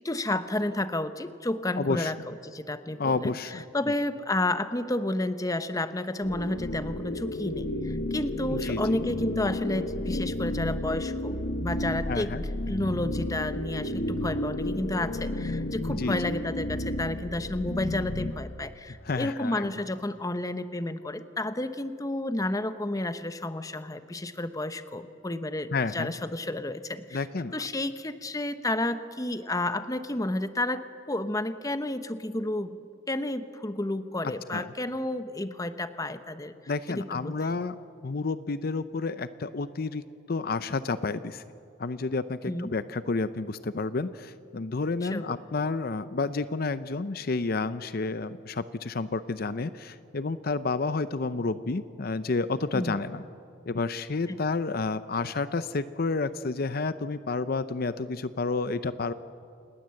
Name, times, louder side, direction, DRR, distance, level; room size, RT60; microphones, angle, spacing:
voice 1, 0.0-12.3 12.6-27.2 27.5-32.8 33.1-36.5 36.9-37.3 42.4-42.7 45.0-45.3 52.7-53.0 54.3-54.4, left 1 dB, 20° left, 11 dB, 0.8 m, -31 dB
voice 2, 1.8-2.1 3.0-3.6 8.5-9.1 12.1-12.4 15.9-16.4 19.0-19.8 25.7-26.1 27.1-27.5 34.5-34.7 36.7-37.8 38.0-41.4 41.8-53.2 53.7-59.1, left 3 dB, 50° left, 13 dB, 0.6 m, -30 dB
sound 1, 6.2-18.3, left 1 dB, 70° left, 1.4 m, -32 dB
27.5 x 20.0 x 7.7 m, 2.5 s
head